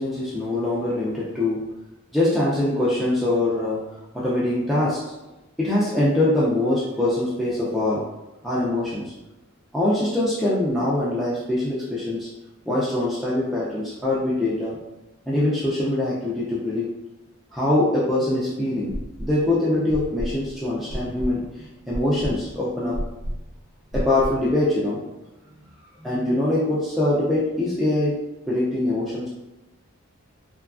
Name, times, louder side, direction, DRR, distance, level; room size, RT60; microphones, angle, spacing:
voice 1, 0.0-1.6 2.1-3.8 4.1-5.0 5.6-8.0 8.4-9.0 9.7-12.3 12.7-14.8 15.3-16.9 17.5-18.9 19.2-23.0 23.9-25.0 26.0-28.1 28.5-29.3, left 1 dB, ahead, -8 dB, 0.3 m, -23 dB
sound 1, 18.9-19.5 19.9-24.5, equal, 80° left, 0.6 m, -32 dB
2.9 x 2.3 x 2.3 m, 0.99 s
head